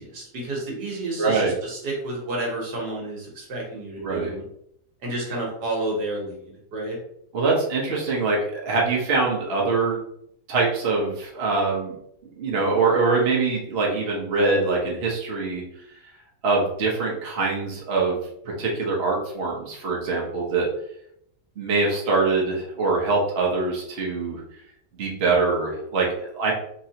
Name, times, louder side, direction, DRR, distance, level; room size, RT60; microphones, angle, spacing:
voice 1, 0.0-4.4 5.0-7.0, right 2 dB, 70° right, -2 dB, 1.7 m, -30 dB
voice 2, 1.2-1.5 4.0-4.3 7.3-10.0 10.5-12.0 12.4-15.6 15.9-16.0 16.4-18.2 18.6-20.7 21.6-24.4 25.0-26.5, right 3 dB, 40° right, -3 dB, 1.0 m, -23 dB
4.4 x 3.0 x 2.8 m, 0.73 s
omnidirectional pair, 1.9 m